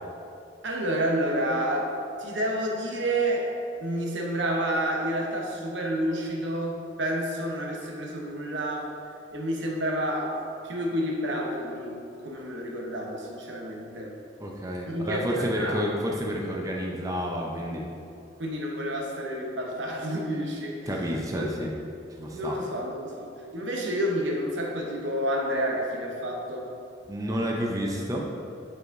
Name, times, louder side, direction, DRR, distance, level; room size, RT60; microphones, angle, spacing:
voice 1, 0.6-1.9 2.2-3.5 3.8-8.9 9.3-10.4 10.6-14.2 14.9-15.8 18.4-20.8 21.3-21.5 22.3-26.7, right 1 dB, 80° right, 0 dB, 0.9 m, -29 dB
voice 2, 14.4-17.8 20.9-21.7 22.2-22.6 27.1-28.3, equal, 20° right, -1 dB, 0.5 m, -30 dB
7.7 x 4.7 x 2.6 m, 2.5 s
head